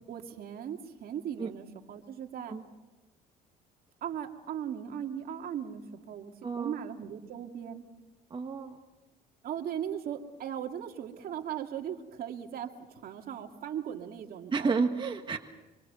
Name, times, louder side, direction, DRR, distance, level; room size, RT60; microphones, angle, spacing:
voice 1, 0.1-2.6 4.0-7.8 9.4-14.7, right 9 dB, 60° right, 4 dB, 2.3 m, -38 dB
voice 2, 6.4-6.8 8.3-8.8 14.5-15.4, right 4 dB, 30° right, 3 dB, 1.6 m, -31 dB
25.5 x 25.0 x 6.9 m, 1.1 s
cardioid pair, 110°, 17 cm